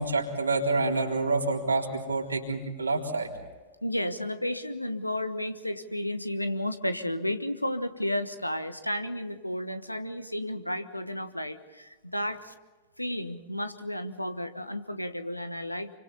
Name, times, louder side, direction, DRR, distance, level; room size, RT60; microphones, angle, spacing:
voice 1, 0.0-3.3, right 3 dB, 80° right, 0 dB, 3.7 m, -27 dB
voice 2, 3.8-12.5 13.0-16.0, left 1 dB, 90° left, 10 dB, 1.3 m, -32 dB
29.0 x 25.0 x 4.2 m, 1.2 s
figure-of-eight pair, 90°, 0 cm